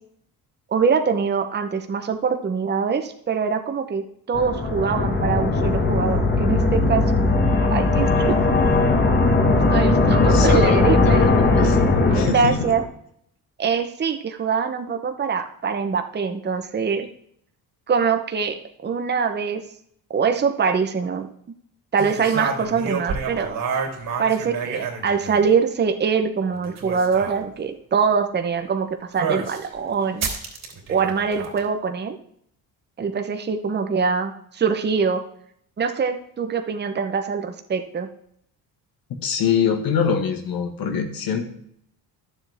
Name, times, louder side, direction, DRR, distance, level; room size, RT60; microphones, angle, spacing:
voice 1, 0.7-7.1 7.7-8.4 9.7-11.3 12.1-12.8 13.6-17.1 17.9-19.6 20.1-21.3 21.9-23.6 24.2-30.3 30.9-32.2 33.0-35.2 35.8-38.1, right 6 dB, 30° right, 6 dB, 0.9 m, -23 dB
sound 1, 4.3-12.9, left 3 dB, 30° left, 1.6 m, -19 dB
voice 2, 10.2-11.8 12.1-12.6 39.2-41.4, left 7 dB, 65° left, 6 dB, 1.6 m, -24 dB
sound 2, 22.0-25.6 26.5-27.4 29.2-29.7 30.2-31.6, right 5 dB, 60° right, 3.3 m, -29 dB
12.0 x 7.3 x 3.5 m, 0.68 s
cardioid pair, 125°, 37 cm